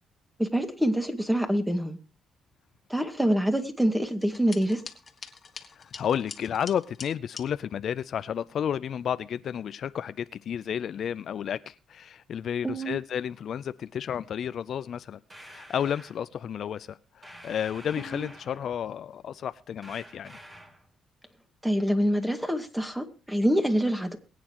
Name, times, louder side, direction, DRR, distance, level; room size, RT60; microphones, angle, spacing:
voice 1, 0.4-2.0 2.9-4.8 12.6-13.0 18.0-18.3 21.6-24.2, equal, 5° right, 6 dB, 2.0 m, -26 dB
sound 1, 4.2-7.5, left 5 dB, 40° left, 1.7 m, -44 dB
voice 2, 5.8-20.4, left 9 dB, 60° left, 14 dB, 0.5 m, -32 dB
sound 2, 15.3-16.2 17.2-18.8 19.8-20.9, right 1 dB, 20° right, 3.1 m, -48 dB
22.0 x 9.3 x 3.0 m, 0.33 s
cardioid pair, 90°, 0 cm